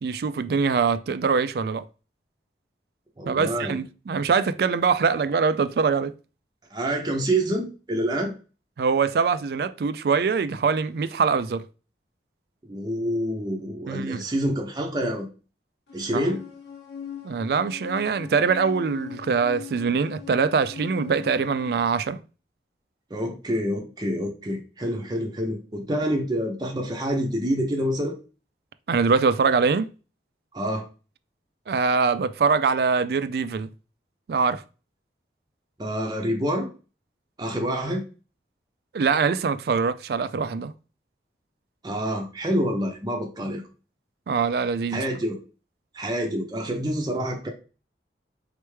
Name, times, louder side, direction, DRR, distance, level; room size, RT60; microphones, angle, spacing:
voice 1, 0.0-1.9 3.3-6.1 8.8-11.7 13.9-14.2 16.1-16.3 17.2-22.2 28.9-29.9 31.7-33.7 34.3-34.6 38.9-40.7 44.3-45.0, right 5 dB, 60° right, 0.3 m, -23 dB
voice 2, 3.2-3.8 6.7-8.3 12.6-15.3 15.9-16.4 23.1-28.2 30.5-30.9 35.8-36.7 37.4-38.0 41.8-43.6 44.9-45.4 45.9-47.5, equal, 25° right, 0.6 m, -27 dB
sound 1, 15.9-21.8, left 8 dB, 85° left, 0.9 m, -40 dB
4.2 x 3.4 x 3.2 m
head